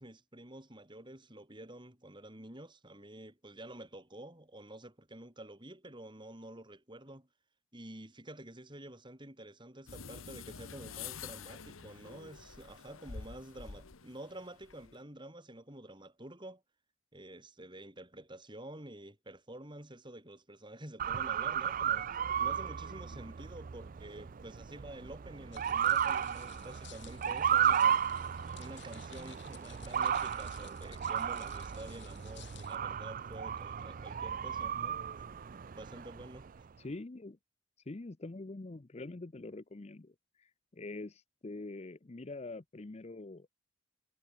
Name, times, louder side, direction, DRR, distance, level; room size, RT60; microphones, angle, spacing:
voice 1, 0.0-7.3 7.7-16.6 17.1-22.1 22.4-28.0 28.6-35.2 35.8-36.7, right 1 dB, 25° right, 4.1 m, -49 dB
sound 1, 9.9-15.0, left 6 dB, 85° left, 1.2 m, -48 dB
Motor vehicle (road) / Siren, 21.0-36.6, right 8 dB, 40° right, 0.4 m, -34 dB
sound 2, 25.5-32.8, left 11 dB, 60° left, 7.6 m, -56 dB
voice 2, 36.8-37.4 37.9-40.1 40.4-43.5, left 2 dB, 30° left, 0.6 m, -45 dB
head